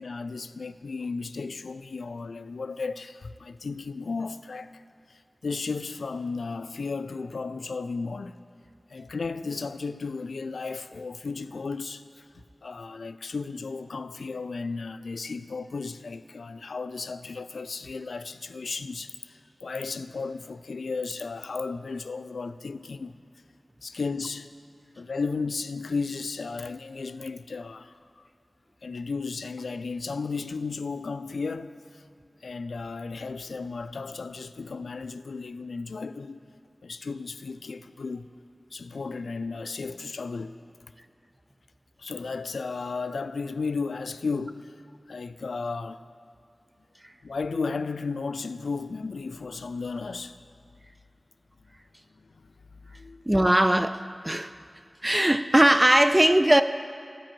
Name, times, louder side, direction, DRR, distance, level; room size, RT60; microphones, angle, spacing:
voice 1, 0.0-4.8 5.1-8.4 8.9-23.2 23.8-24.5 25.0-28.3 28.8-32.0 32.4-36.4 36.8-38.3 38.7-40.6 42.0-44.7 45.1-46.0 47.2-50.4 52.2-53.2, left 4 dB, 90° left, 0.3 m, -34 dB
voice 2, 53.3-54.5 55.0-56.6, right 1 dB, 20° right, 0.3 m, -20 dB
12.5 x 5.2 x 7.5 m
cardioid pair, 40°, 0 cm